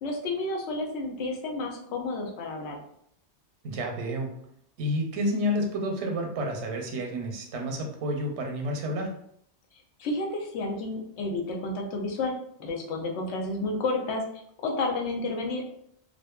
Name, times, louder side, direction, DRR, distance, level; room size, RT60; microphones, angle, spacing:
voice 1, 0.0-2.8 10.0-12.3 12.6-14.2 14.6-15.7, left 2 dB, 85° left, 1 dB, 0.9 m, -31 dB
voice 2, 3.6-4.3 4.8-9.1, equal, 90° right, 2 dB, 0.9 m, -30 dB
2.5 x 2.4 x 2.2 m, 0.68 s
omnidirectional pair, 1.1 m